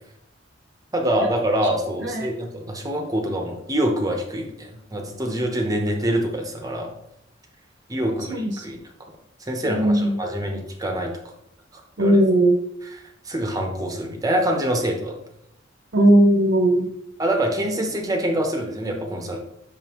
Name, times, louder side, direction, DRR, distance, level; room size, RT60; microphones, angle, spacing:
voice 1, 0.9-6.9 7.9-8.8 9.4-11.1 12.0-12.2 13.3-15.1 17.2-19.4, right 1 dB, 20° right, 2 dB, 0.8 m, -25 dB
voice 2, 8.1-8.6 9.7-10.2 12.0-12.6 15.9-16.9, right 1 dB, 65° right, 2 dB, 0.8 m, -18 dB
6.6 x 5.2 x 3.0 m, 0.79 s
head